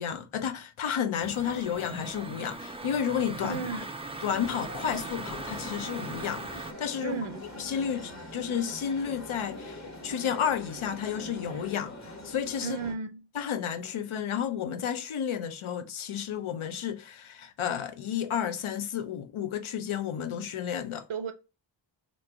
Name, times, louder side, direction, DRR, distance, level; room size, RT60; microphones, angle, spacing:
voice 1, 0.0-3.8 4.2-7.2 7.6-12.8 13.3-21.0, left 8 dB, 80° left, 0.6 m, -32 dB
sound 1, 1.2-6.7, right 2 dB, 15° right, 0.3 m, -40 dB
voice 2, 3.5-3.9 7.0-7.4 12.6-13.3 21.1-21.3, right 5 dB, 75° right, 0.6 m, -34 dB
sound 2, 4.4-12.9, left 1 dB, 35° left, 1.1 m, -43 dB
3.1 x 2.5 x 4.4 m
wide cardioid pair, 75°, 49 cm